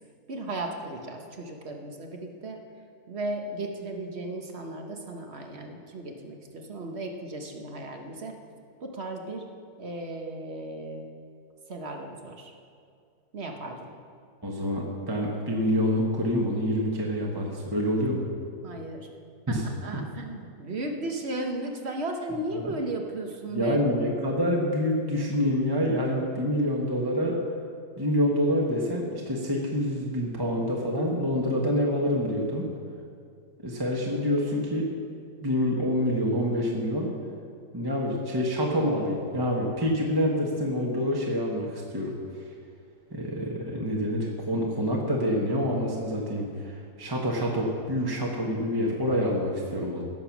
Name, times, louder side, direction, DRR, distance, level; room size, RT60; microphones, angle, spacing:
voice 1, 0.3-2.6 3.1-8.4 8.8-9.5 9.8-11.0 11.7-12.5 13.3-13.9 18.6-19.1 19.5-23.8, right 2 dB, 40° right, 3 dB, 1.3 m, -35 dB
voice 2, 14.4-18.2 19.5-19.6 22.6-22.7 23.5-27.4 28.0-32.7 33.6-34.9 35.4-37.1 37.7-42.1 43.1-50.0, equal, 15° right, -2 dB, 1.2 m, -27 dB
16.5 x 7.1 x 6.0 m, 2.3 s
omnidirectional pair, 1.8 m